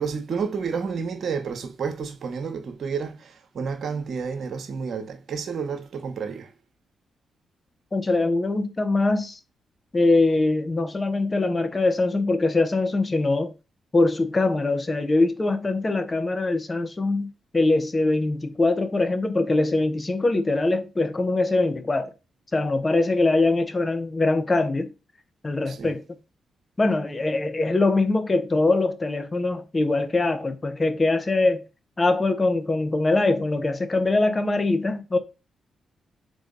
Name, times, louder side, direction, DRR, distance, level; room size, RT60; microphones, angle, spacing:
voice 1, 0.0-6.5 25.7-25.9, right 5 dB, 65° right, 0.9 m, -30 dB
voice 2, 7.9-9.4 9.9-13.5 13.9-22.1 22.5-24.9 25.4-26.0 26.8-31.6 32.0-35.2, left 2 dB, 35° left, 0.9 m, -22 dB
3.9 x 3.2 x 3.8 m
supercardioid pair, 50°, 0 cm